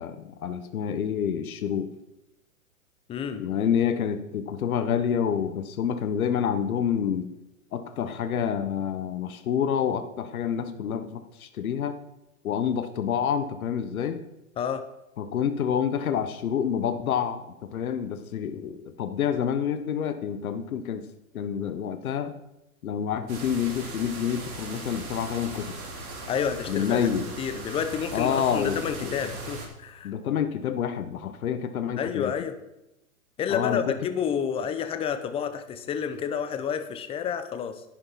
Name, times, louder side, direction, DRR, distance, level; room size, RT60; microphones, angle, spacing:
voice 1, 0.0-1.9 3.4-7.3 7.7-12.0 12.4-14.2 15.2-21.1 21.3-22.4 22.8-25.8 26.7-27.2 28.1-29.1 30.0-32.3 33.5-33.9, left 8 dB, 70° left, 9 dB, 1.2 m, -28 dB
voice 2, 3.1-3.4 14.6-14.8 26.3-27.1 27.4-30.1 32.0-32.6 33.4-37.8, left 8 dB, 15° left, 10 dB, 0.7 m, -29 dB
sound 1, 23.3-29.7, right 2 dB, 70° right, 3.7 m, -38 dB
11.0 x 10.5 x 4.1 m, 0.90 s
hypercardioid pair, 130°, 44 cm